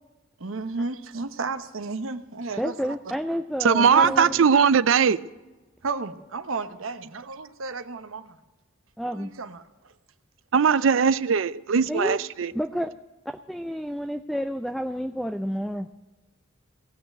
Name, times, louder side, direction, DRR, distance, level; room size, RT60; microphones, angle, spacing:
voice 1, 0.4-2.8 4.0-4.1 5.8-8.4 9.1-9.9, right 3 dB, 90° right, 0.9 m, -33 dB
voice 2, 2.6-4.4 9.0-9.3 11.8-12.2 12.5-12.9 13.3-15.9, equal, ahead, 0.3 m, -30 dB
voice 3, 3.6-5.2 10.5-12.5, right 6 dB, 75° right, 0.5 m, -20 dB
18.0 x 6.5 x 9.1 m
head